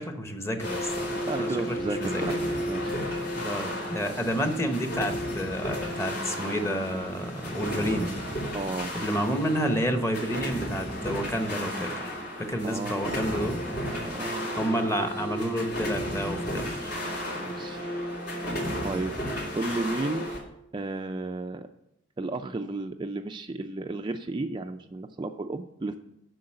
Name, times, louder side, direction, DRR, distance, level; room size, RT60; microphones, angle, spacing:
voice 1, 0.0-0.9 1.4-2.2 3.3-8.1 8.9-12.1 12.4-13.6 14.6-16.9, equal, 15° left, 6 dB, 1.1 m, -30 dB
sound 1, 0.6-20.4, equal, 60° left, 3.1 m, -33 dB
voice 2, 0.9-2.4 2.7-3.0 8.5-8.9 12.6-14.8 15.2-15.3 17.4-18.2 18.8-19.1 19.5-20.3 20.7-21.7 22.2-26.0, right 2 dB, 25° right, 6 dB, 0.4 m, -34 dB
7.8 x 6.4 x 7.7 m, 0.81 s
head